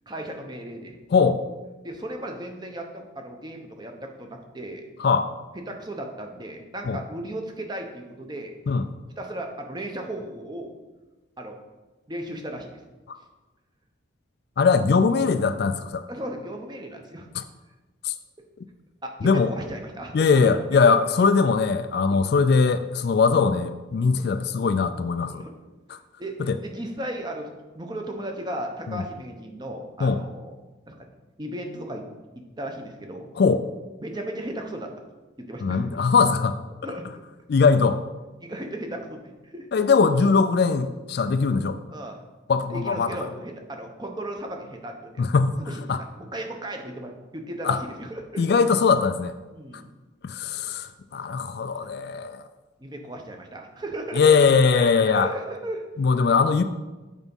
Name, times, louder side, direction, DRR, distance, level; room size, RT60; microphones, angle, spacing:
voice 1, 0.1-1.0 1.8-4.9 5.5-8.6 9.2-10.7 11.4-11.6 12.1-12.7 16.1-17.3 19.0-20.4 20.7-20.9 22.1-22.2 24.2-24.3 25.3-25.5 26.2-30.5 30.9-31.1 31.4-32.0 32.6-33.3 34.0-34.9 35.4-35.8 36.8-37.0 38.4-39.7 41.9-42.2 42.7-45.2 45.6-48.5 49.5-49.9 52.8-55.8, right 1 dB, 20° right, 3 dB, 0.7 m, -35 dB
voice 2, 1.1-1.4 5.0-5.3 6.8-7.0 8.7-8.9 13.1-13.2 14.6-16.0 17.3-17.4 18.0-18.1 19.2-19.5 20.1-25.4 25.9-26.0 26.5-26.6 28.9-29.0 30.0-30.2 33.4-33.6 35.6-36.6 37.5-38.0 39.7-41.8 42.5-43.1 45.2-45.5 45.9-46.0 47.6-47.8 48.4-49.3 50.2-52.4 54.1-55.3 56.0-56.6, left 5 dB, 50° left, 10 dB, 0.3 m, -21 dB
8.2 x 4.0 x 5.3 m, 1.2 s
head